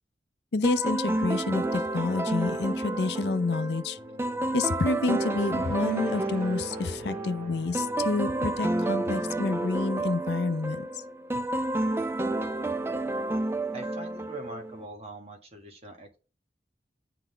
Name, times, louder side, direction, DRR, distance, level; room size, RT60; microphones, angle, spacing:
voice 1, 0.5-4.0 4.5-11.0 11.4-11.5, left 3 dB, 65° left, 0.5 m, -29 dB
sound 1, 0.6-14.9, right 2 dB, 15° right, 0.4 m, -30 dB
sound 2, 4.0-10.6, left 1 dB, 50° right, 1.9 m, -46 dB
voice 2, 13.7-16.2, right 1 dB, 35° right, 1.7 m, -43 dB
9.9 x 3.9 x 3.4 m
head